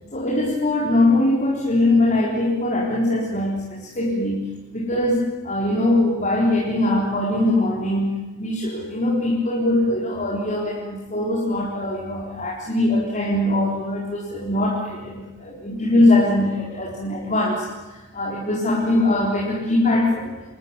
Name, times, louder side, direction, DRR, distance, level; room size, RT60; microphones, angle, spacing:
voice 1, 0.1-4.5 4.7-20.3, left 1 dB, 40° left, -3 dB, 4.1 m, -21 dB
27.5 x 20.0 x 9.8 m, 1.2 s
head